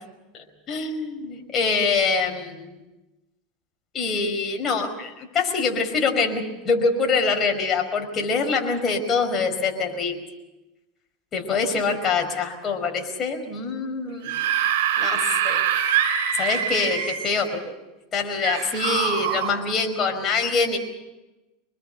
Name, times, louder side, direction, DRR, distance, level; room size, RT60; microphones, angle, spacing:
voice 1, 0.7-2.8 3.9-10.2 11.3-14.3 15.0-15.7 16.4-17.7 18.1-20.8, left 4 dB, 30° left, 3 dB, 5.0 m, -24 dB
Screaming / Screech, 14.1-17.5 18.4-19.5, right 9 dB, 75° right, 4.3 m, -24 dB
26.0 x 21.0 x 6.7 m, 1.0 s
supercardioid pair, 130°, 0 cm